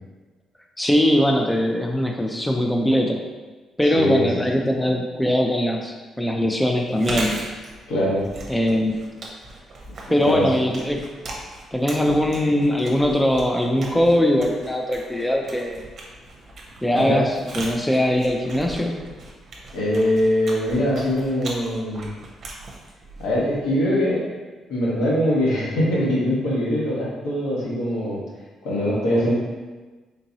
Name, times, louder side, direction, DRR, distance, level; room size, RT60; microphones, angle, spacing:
voice 1, 0.8-3.3 3.8-7.4 8.5-9.1 10.1-11.0 11.7-15.8 16.8-19.0, equal, 5° left, 2 dB, 0.3 m, -21 dB
voice 2, 3.9-4.3 7.9-8.2 10.1-10.5 16.9-17.2 19.7-22.1 23.2-24.2 24.7-28.2 28.6-29.3, equal, 85° left, -6 dB, 1.1 m, -22 dB
Chewing mastication, 6.8-23.7, right 2 dB, 55° right, 0.7 m, -38 dB
3.7 x 2.6 x 2.8 m, 1.3 s
cardioid pair, 90°, 0 cm